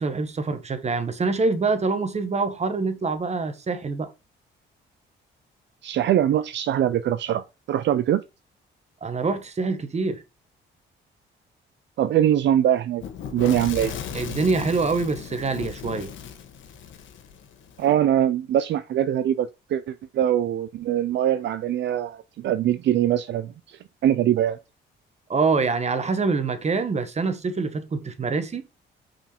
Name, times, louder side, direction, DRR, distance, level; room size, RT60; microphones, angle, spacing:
voice 1, 0.0-4.1 9.0-10.2 14.1-16.1 25.3-28.6, right 4 dB, 35° right, 1.2 m, -25 dB
voice 2, 5.8-8.2 12.0-13.0 13.3-13.9 17.8-24.6, right 11 dB, 65° right, 0.5 m, -23 dB
Fire / Explosion, 13.0-17.8, left 8 dB, 75° left, 1.3 m, -36 dB
5.7 x 4.5 x 4.4 m
cardioid pair, 90°, 20 cm